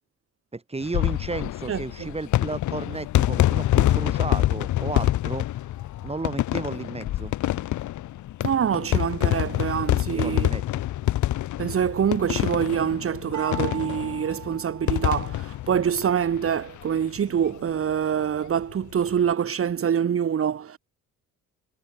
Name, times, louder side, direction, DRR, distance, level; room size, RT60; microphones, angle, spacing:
voice 1, 0.5-5.5 6.0-7.3 9.8-10.8, right 3 dB, 20° right, 5.5 m, -33 dB
sound 1, 0.8-16.8 17.2-17.3 17.4-17.5 18.8-19.1, left 14 dB, 75° left, 1.1 m, -26 dB
voice 2, 1.7-2.1 8.4-10.5 11.6-20.8, right 8 dB, 45° right, 1.8 m, -25 dB
sound 2, 13.3-15.5, right 11 dB, 70° right, 4.4 m, -39 dB
cardioid pair, 90°, 30 cm